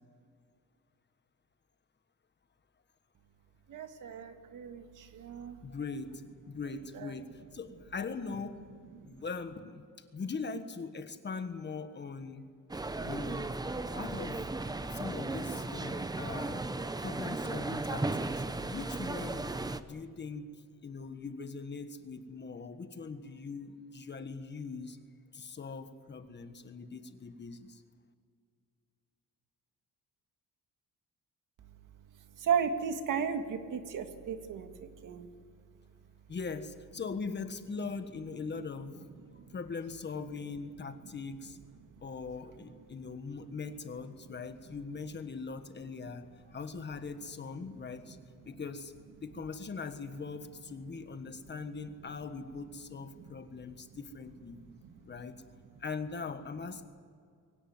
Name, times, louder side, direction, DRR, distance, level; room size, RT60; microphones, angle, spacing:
voice 1, 3.7-5.6 6.9-7.1 9.0-9.1 32.4-35.3 54.8-54.9, right 7 dB, 70° right, 7 dB, 2.0 m, -35 dB
voice 2, 5.6-8.6 9.0-9.8 10.1-12.4 13.0-13.5 13.9-14.5 14.9-16.6 17.0-19.5 19.8-20.5 20.8-25.0 25.3-27.8 36.3-39.1 39.5-41.6 42.0-48.2 48.4-48.9 49.2-54.6 55.0-55.4 55.8-56.8, left 4 dB, 30° left, 9 dB, 1.4 m, -41 dB
sound 1, 12.7-19.8, right 2 dB, 10° right, 0.7 m, -36 dB
22.5 x 18.0 x 9.6 m, 2.2 s
cardioid pair, 155°, 33 cm